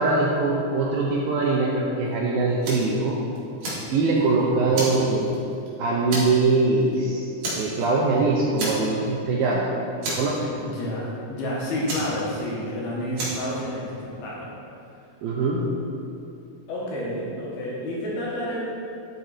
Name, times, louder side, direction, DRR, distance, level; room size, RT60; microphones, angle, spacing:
voice 1, 0.0-3.2 3.9-5.4 5.8-7.2 7.5-9.7 10.1-10.5 15.2-15.6, right 3 dB, 75° right, -3 dB, 2.3 m, -22 dB
Fire, 2.6-3.0 3.4-4.3 4.7-5.7 6.1-6.5 6.8-7.0 7.4-8.1 8.6-9.2 9.4-9.5 10.0-10.8 11.9-12.7 13.2-13.5, right 1 dB, 55° right, 3.4 m, -31 dB
voice 2, 4.2-4.9 10.6-14.5 16.7-18.6, left 1 dB, 65° left, -4 dB, 3.1 m, -30 dB
12.0 x 6.1 x 4.2 m, 2.6 s
omnidirectional pair, 4.9 m